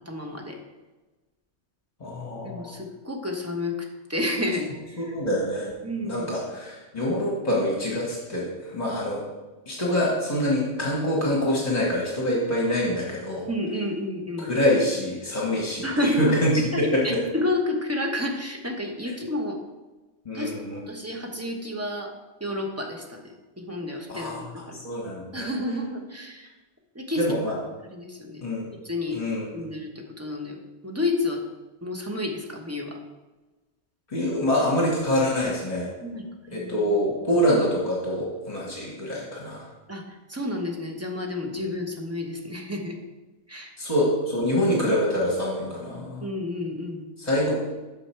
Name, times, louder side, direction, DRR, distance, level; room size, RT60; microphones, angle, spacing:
voice 1, 0.1-0.6 2.4-5.1 5.8-6.3 13.5-14.5 15.8-16.9 17.3-19.6 20.3-22.1 22.4-24.8 25.3-26.5 26.9-27.3 27.9-28.4 28.8-29.2 29.5-31.4 31.8-33.0 36.0-36.2 36.5-36.9 39.9-40.0 40.3-43.0 43.5-43.7 46.2-47.0, left 1 dB, 15° right, 1 dB, 0.9 m, -30 dB
voice 2, 2.0-2.7 5.0-5.7 6.0-9.2 9.7-13.5 14.4-16.5 16.8-17.2 20.2-20.8 24.1-24.4 24.8-25.5 27.2-27.5 28.4-28.6 29.1-29.5 34.1-35.9 36.5-39.7 43.8-46.2 47.2-47.5, equal, 35° left, -4 dB, 1.5 m, -25 dB
7.7 x 6.2 x 4.5 m, 1.2 s
omnidirectional pair, 1.2 m